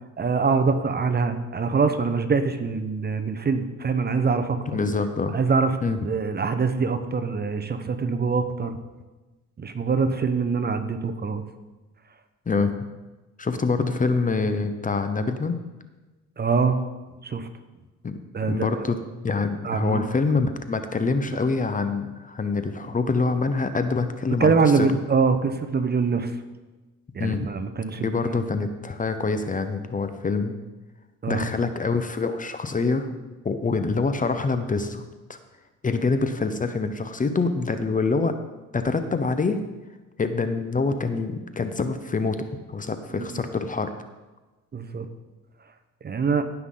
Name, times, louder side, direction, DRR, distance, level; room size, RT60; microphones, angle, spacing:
voice 1, 0.2-4.6 5.3-5.8 6.0-8.7 9.6-11.4 16.4-16.8 17.2-17.5 18.3-18.9 19.6-20.1 24.4-26.3 27.1-28.1 31.2-31.5 43.1-43.4 44.7-45.1 46.0-46.4, right 5 dB, 35° right, 9 dB, 0.8 m, -24 dB
voice 2, 4.7-5.3 5.8-6.0 12.5-12.7 13.4-15.6 18.0-18.2 18.5-24.9 27.2-27.5 28.0-30.5 31.3-33.1 33.4-35.0 35.3-35.4 35.8-38.3 38.7-39.6 40.2-43.9, left 4 dB, 25° left, 9 dB, 0.7 m, -25 dB
16.0 x 5.8 x 3.8 m, 1.2 s
cardioid pair, 90°, 30 cm